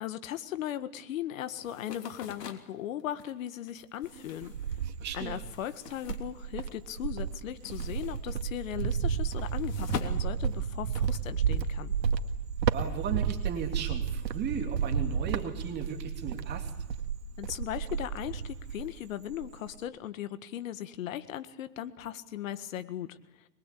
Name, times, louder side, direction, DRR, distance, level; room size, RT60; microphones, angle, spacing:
voice 1, 0.0-4.5 5.1-11.9 17.4-23.2, left 11 dB, 50° left, 12 dB, 1.8 m, -38 dB
sound 1, 1.6-7.0 7.3-11.2, left 7 dB, 75° left, 3.3 m, -44 dB
Cricket, 4.0-5.6 6.0-19.0 19.3-19.8, right 7 dB, 85° right, 2.1 m, -32 dB
voice 2, 5.0-5.4 12.7-16.7, right 7 dB, 20° right, 4 dB, 2.8 m, -36 dB
24.0 x 22.0 x 8.5 m, 0.90 s
hypercardioid pair, 145°, 49 cm